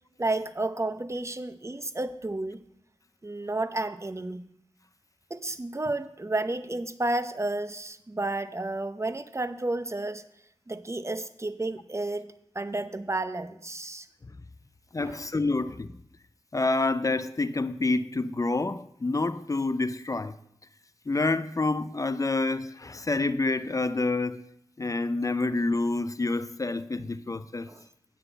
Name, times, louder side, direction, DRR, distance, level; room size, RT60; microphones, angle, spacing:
voice 1, 0.2-2.6 3.2-4.4 5.3-10.2 10.7-12.3 12.5-14.1 15.0-15.2 27.7-27.8, right 2 dB, 30° right, 0.7 m, -31 dB
voice 2, 14.9-15.9 16.5-20.4 21.1-24.5 24.8-27.7, left 3 dB, 35° left, 0.5 m, -28 dB
9.6 x 5.9 x 7.8 m
cardioid pair, 50°, 9 cm